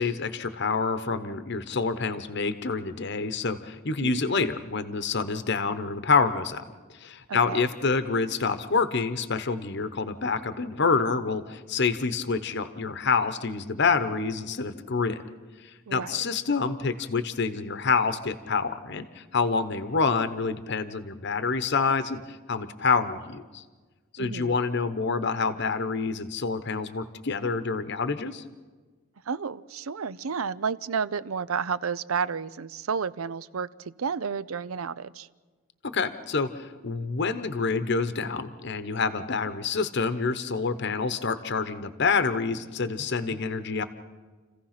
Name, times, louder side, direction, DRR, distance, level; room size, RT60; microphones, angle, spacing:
voice 1, 0.0-6.6 6.9-15.2 15.6-23.6 24.1-28.4 35.8-43.8, left 4 dB, 55° left, 0.9 m, -27 dB
voice 2, 7.3-7.6 15.9-16.2 24.2-24.6 29.3-35.3, right 6 dB, 85° right, 0.6 m, -31 dB
29.5 x 15.5 x 5.9 m
head